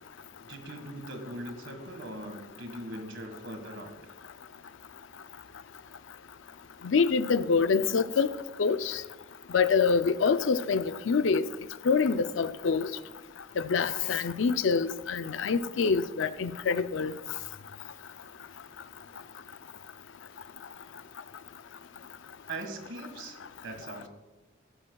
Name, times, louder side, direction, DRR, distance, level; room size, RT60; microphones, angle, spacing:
voice 1, 0.4-4.1 22.5-24.1, right 1 dB, 70° right, 1.7 m, -41 dB
voice 2, 6.8-8.3 8.6-9.0 9.5-11.4 11.9-12.9 13.7-17.1, left 5 dB, 75° left, 0.5 m, -25 dB
15.0 x 12.0 x 2.3 m
head